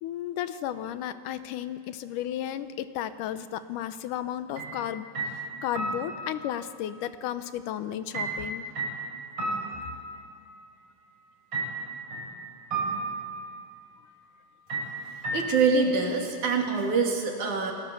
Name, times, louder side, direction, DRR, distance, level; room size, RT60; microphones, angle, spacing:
voice 1, 0.0-8.7, left 11 dB, 85° left, 12 dB, 2.4 m, -34 dB
sound 1, 4.6-4.8 5.2-6.5 8.1-10.5 11.5-12.3 12.7-13.5 14.7-15.8, right 3 dB, 35° right, 6.5 m, -33 dB
voice 2, 15.1-17.7, right 4 dB, 70° right, 1 dB, 4.0 m, -25 dB
28.5 x 19.5 x 7.1 m, 2.2 s
omnidirectional pair, 3.6 m